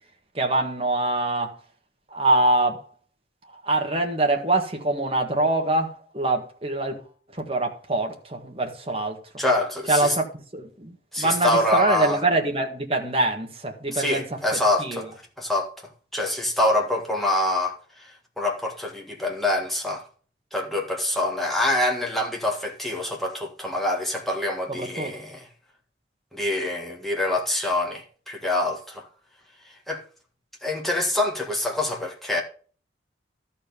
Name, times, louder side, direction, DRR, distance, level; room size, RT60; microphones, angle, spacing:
voice 1, 0.3-1.6 2.1-2.9 3.5-7.0 7.3-9.4 9.9-10.3 10.5-14.4 14.8-15.1 24.7-25.2, right 2 dB, 30° right, 1.7 m, -24 dB
voice 2, 9.4-10.2 11.1-12.2 13.9-15.1 15.4-20.0 20.5-25.4 26.3-29.0 29.9-30.0 30.6-32.4, left 1 dB, ahead, 1.7 m, -25 dB
13.0 x 4.3 x 7.0 m
head